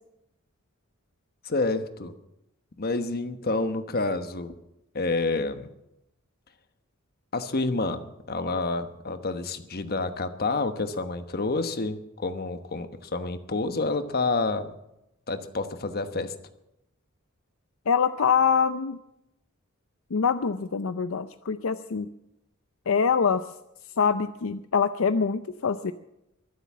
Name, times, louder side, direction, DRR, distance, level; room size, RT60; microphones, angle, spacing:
voice 1, 1.4-2.1 2.8-4.5 4.9-5.7 7.3-14.7 15.3-16.3, left 3 dB, 45° left, 9 dB, 1.1 m, -28 dB
voice 2, 17.9-19.0 20.1-22.1 22.9-23.4 24.0-25.9, left 6 dB, 70° left, 11 dB, 0.5 m, -24 dB
23.0 x 8.0 x 7.3 m, 0.87 s
head